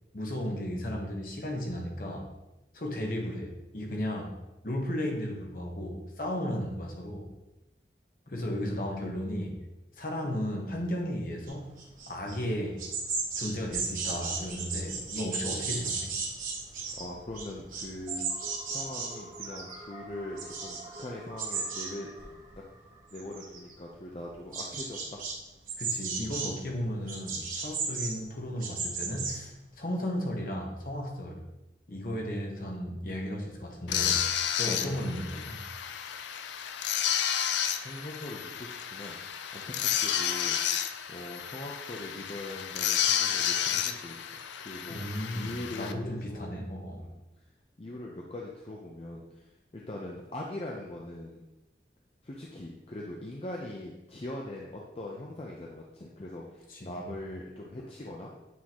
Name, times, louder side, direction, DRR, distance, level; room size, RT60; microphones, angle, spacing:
voice 1, 0.1-2.3 2.7-4.4 4.6-7.3 8.3-9.6 10.0-11.7 12.1-12.9 13.4-16.2 25.8-31.4 31.9-34.2 34.6-35.6 44.9-47.0 56.7-57.0, equal, 50° left, 0 dB, 1.1 m, -34 dB
voice 2, 8.3-9.2 16.9-18.3 18.6-22.1 23.1-25.2 34.7-34.9 37.8-39.2 39.5-40.6 41.1-44.2 44.6-46.6 47.0-47.2 47.8-51.4 52.2-58.3, left 1 dB, 35° left, -2 dB, 0.5 m, -41 dB
sound 1, 11.5-12.4 12.6-19.8 20.0-21.0 21.4-21.9 22.2-22.8 23.1-23.7 24.3-25.3 25.7-26.5 27.1-29.3, right 4 dB, 50° right, 1.2 m, -35 dB
sound 2, 18.1-23.9, right 2 dB, 30° right, 1.1 m, -49 dB
sound 3, 33.9-45.9, left 9 dB, 85° left, 0.4 m, -31 dB
8.4 x 3.8 x 3.0 m, 0.98 s
head